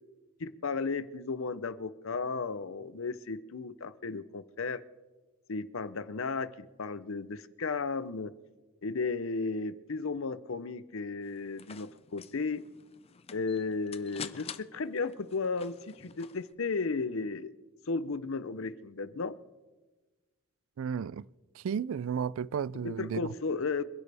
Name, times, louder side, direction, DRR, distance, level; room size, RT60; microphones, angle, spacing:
voice 1, 0.4-4.8 5.5-8.3 8.8-12.6 13.3-17.5 17.9-19.4 22.8-23.8, left 4 dB, 65° left, 0.7 m, -34 dB
sound 1, 11.2-16.5, left 7 dB, 25° left, 0.4 m, -48 dB
voice 2, 20.8-21.3 21.6-23.2, right 7 dB, 65° right, 0.3 m, -33 dB
26.5 x 11.0 x 3.4 m
head